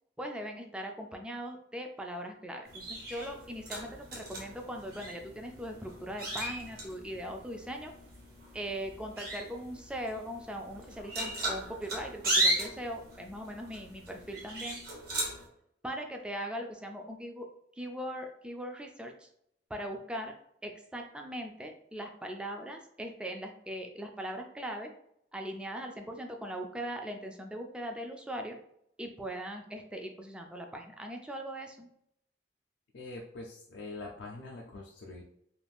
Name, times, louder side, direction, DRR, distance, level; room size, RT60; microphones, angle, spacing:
voice 1, 0.2-7.9 8.5-14.8 15.8-17.5 17.8-19.3 19.7-20.3 20.6-24.9 25.3-28.6 29.0-31.9, equal, 5° right, 3 dB, 0.3 m, -40 dB
sound 1, 2.7-15.4, right 1 dB, 60° right, 1.0 m, -37 dB
voice 2, 32.9-35.2, left 2 dB, 75° left, -1 dB, 0.4 m, -44 dB
2.5 x 2.3 x 3.4 m, 0.74 s
head